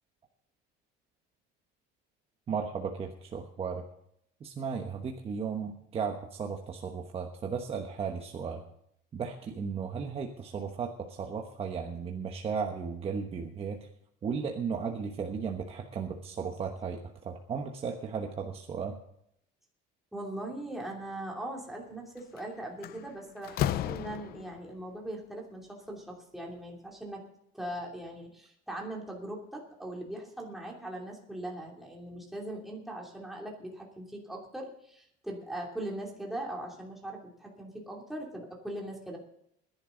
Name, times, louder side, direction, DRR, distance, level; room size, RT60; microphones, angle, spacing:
voice 1, 2.5-3.8 4.4-8.6 9.1-13.8 14.2-18.9, right 6 dB, 30° right, 2 dB, 1.2 m, -35 dB
voice 2, 20.1-27.2 27.5-39.2, right 1 dB, ahead, -2 dB, 2.9 m, -40 dB
Slam, 22.2-22.4 22.8-24.7, left 12 dB, 50° left, 0.6 m, -33 dB
21.0 x 10.5 x 3.9 m, 0.73 s
cardioid pair, 155°, 21 cm